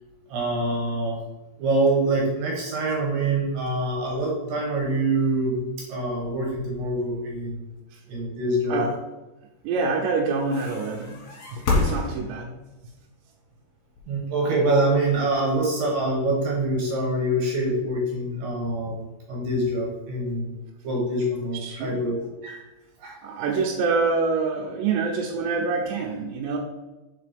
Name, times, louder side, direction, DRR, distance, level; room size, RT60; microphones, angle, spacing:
voice 1, 0.3-1.2 1.6-7.6 8.1-8.9 14.1-20.5 20.8-22.6 23.0-23.2, right 1 dB, 65° right, -1 dB, 2.4 m, -25 dB
voice 2, 9.6-11.2 11.5-12.6 21.6-22.0 23.2-26.6, right 4 dB, 85° right, -1 dB, 2.9 m, -26 dB
sound 1, 10.5-12.7 13.9-15.3, left 3 dB, 55° left, 2.0 m, -28 dB
5.2 x 4.8 x 5.0 m, 1.1 s
omnidirectional pair, 4.9 m